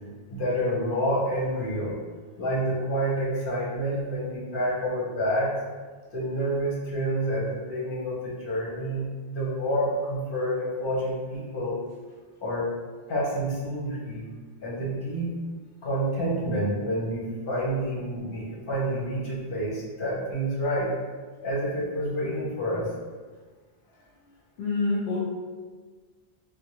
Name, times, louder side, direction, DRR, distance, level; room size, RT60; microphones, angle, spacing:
voice 1, 0.3-1.9 2.4-5.5 6.1-11.8 12.4-12.7 13.1-14.2 14.6-15.4 15.8-20.9 21.4-22.9, equal, 55° left, -5 dB, 1.0 m, -28 dB
voice 2, 24.6-25.2, left 3 dB, 80° left, -4 dB, 0.8 m, -26 dB
3.4 x 2.1 x 3.0 m, 1.4 s
omnidirectional pair, 1.1 m